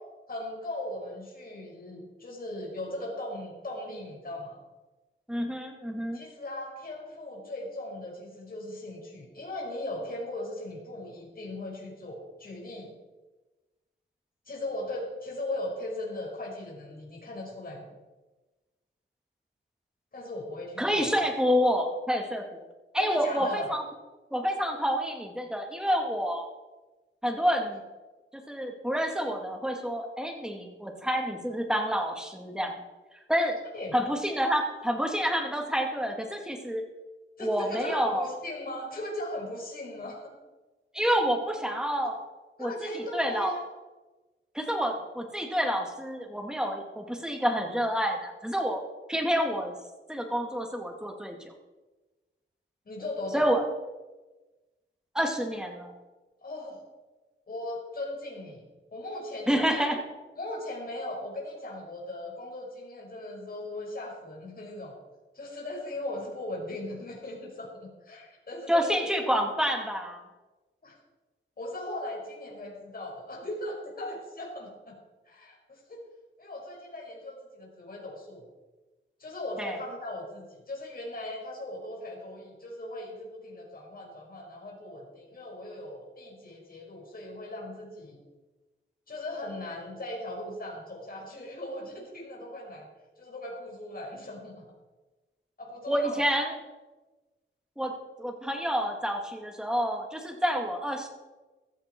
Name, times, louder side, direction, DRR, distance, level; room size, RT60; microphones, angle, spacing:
voice 1, 0.3-4.6 6.1-12.9 14.5-17.9 20.1-21.1 23.0-23.7 33.7-34.0 37.4-40.3 42.6-43.7 52.9-53.5 56.4-56.8 57.5-58.7 58.9-59.9 60.4-65.0 65.3-69.1 70.8-71.0 71.6-75.0 75.3-76.0 76.4-78.5 79.2-88.2 89.1-92.9 93.2-94.6 95.6-96.2, left 1 dB, 45° left, -2 dB, 5.5 m, -38 dB
voice 2, 5.3-6.2 20.8-22.6 22.9-23.8 24.3-26.5 27.2-27.8 28.3-32.7 33.3-33.6 33.9-36.8 37.4-38.3 40.9-42.2 42.6-43.5 44.5-48.8 49.1-49.7 50.1-51.5 53.3-53.6 55.1-55.9 59.5-60.0 68.7-70.2 79.6-79.8 95.9-96.6 97.8-97.9 98.2-101.1, equal, 5° right, 2 dB, 2.4 m, -28 dB
15.5 x 13.5 x 4.6 m, 1.2 s
wide cardioid pair, 100°, 20 cm